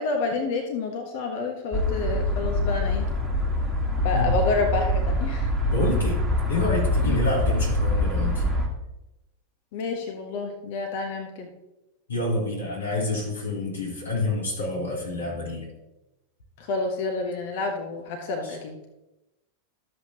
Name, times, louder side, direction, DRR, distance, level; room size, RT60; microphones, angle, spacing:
voice 1, 0.0-3.1 4.0-5.5 7.0-7.2 9.7-11.5 16.7-18.8, left 3 dB, 50° left, 3 dB, 1.2 m, -29 dB
sound 1, 1.7-8.7, left 1 dB, 5° right, 1.6 m, -24 dB
voice 2, 5.7-8.4 12.1-15.7 18.4-18.6, left 2 dB, 75° left, -4 dB, 3.8 m, -28 dB
12.5 x 7.7 x 2.9 m, 0.96 s
figure-of-eight pair, 90°, 0 cm